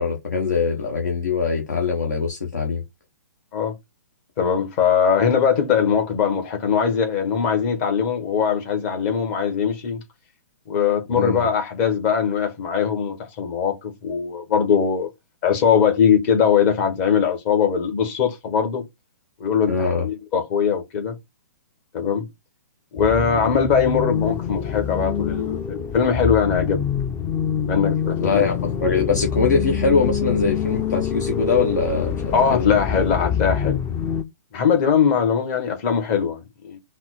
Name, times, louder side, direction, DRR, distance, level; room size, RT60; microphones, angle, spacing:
voice 1, 0.0-2.8 11.1-11.5 19.7-20.1 28.2-32.6, left 4 dB, 75° left, 1.3 m, -22 dB
voice 2, 4.4-10.0 10.7-15.1 15.4-18.8 19.4-19.7 20.0-21.2 21.9-22.3 22.9-26.8 27.6-28.5 32.3-33.8 34.5-36.8, left 7 dB, 40° left, 1.3 m, -21 dB
sound 1, 23.0-34.2, left 7 dB, 20° left, 0.5 m, -26 dB
4.1 x 2.2 x 4.1 m
figure-of-eight pair, 125°, 10 cm